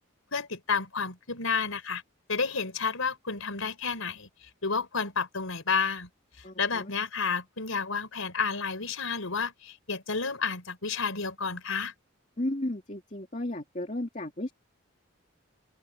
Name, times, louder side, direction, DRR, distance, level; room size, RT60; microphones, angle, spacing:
voice 1, 0.3-2.0 2.3-4.3 4.6-6.1 6.6-11.9, left 5 dB, 85° left, 4.4 m, -31 dB
voice 2, 6.4-6.9 12.4-14.5, left 1 dB, 35° left, 2.4 m, -34 dB
head